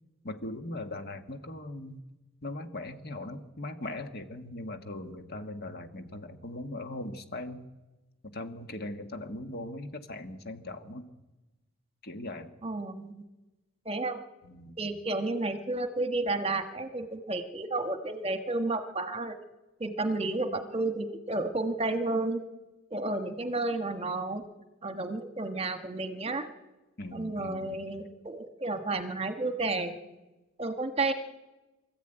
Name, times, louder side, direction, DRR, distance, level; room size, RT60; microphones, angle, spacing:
voice 1, 0.2-2.0 2.4-7.6 8.2-11.1 12.0-12.5 14.4-14.8 27.0-27.8, left 2 dB, 50° left, 7 dB, 1.6 m, -39 dB
voice 2, 12.6-13.2 13.8-14.2 14.8-19.4 19.8-22.4 22.9-24.4 24.8-26.5 27.1-30.0 30.6-31.1, right 2 dB, 30° right, 8 dB, 1.4 m, -31 dB
24.0 x 14.0 x 9.0 m, 1.1 s
head